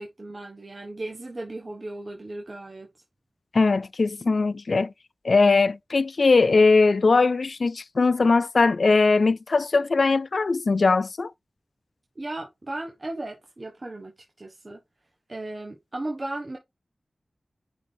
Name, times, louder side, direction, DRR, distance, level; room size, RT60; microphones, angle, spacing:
voice 1, 0.0-2.9 12.2-14.1 14.4-14.8 15.3-16.6, right 2 dB, 40° right, 1.3 m, -36 dB
voice 2, 3.5-4.9 5.2-11.3, left 3 dB, 65° left, 0.4 m, -20 dB
9.5 x 4.0 x 3.4 m
wide cardioid pair, 70°, 0 cm